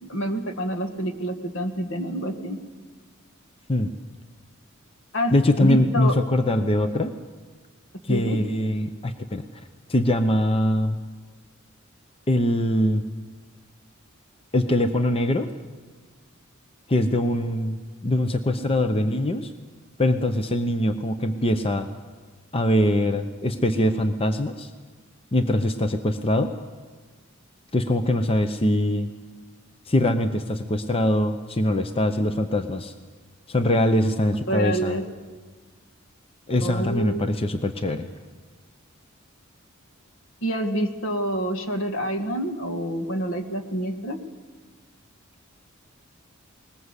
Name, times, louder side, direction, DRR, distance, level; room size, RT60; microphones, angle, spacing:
voice 1, 0.0-2.6 5.1-5.3 5.6-6.2 8.1-8.4 34.5-35.0 36.6-37.2 40.4-44.2, right 1 dB, 65° left, 6 dB, 1.9 m, -27 dB
voice 2, 5.3-7.1 8.0-9.4 9.9-11.0 12.3-13.0 14.5-15.5 16.9-19.5 20.0-21.9 22.5-24.7 25.3-26.5 27.7-29.1 29.9-32.9 33.5-35.0 36.5-38.1, left 1 dB, 25° left, 8 dB, 0.8 m, -22 dB
20.5 x 20.0 x 8.2 m, 1.4 s
head